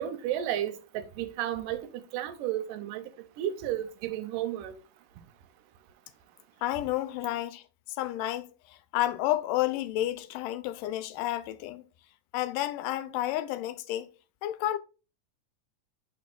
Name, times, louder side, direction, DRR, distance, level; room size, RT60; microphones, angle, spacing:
voice 1, 0.0-4.8, right 11 dB, 90° right, 2.3 m, -33 dB
voice 2, 6.6-11.8 12.3-14.1 14.4-14.8, left 14 dB, 85° left, 2.2 m, -31 dB
10.5 x 4.2 x 2.2 m
omnidirectional pair, 3.7 m